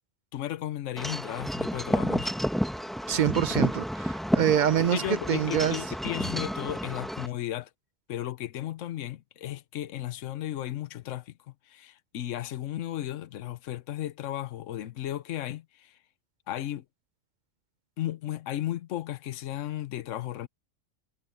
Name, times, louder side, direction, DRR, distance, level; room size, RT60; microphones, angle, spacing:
voice 1, 0.3-2.3 4.8-7.7 8.1-11.3 11.7-16.0 16.5-16.8 18.0-20.5, left 13 dB, 80° left, 1.1 m, -35 dB
Wind chime / Wind, 1.0-7.3, equal, ahead, 0.9 m, -30 dB
voice 2, 3.1-5.8, right 9 dB, 60° right, 0.5 m, -25 dB
omnidirectional pair, 1.3 m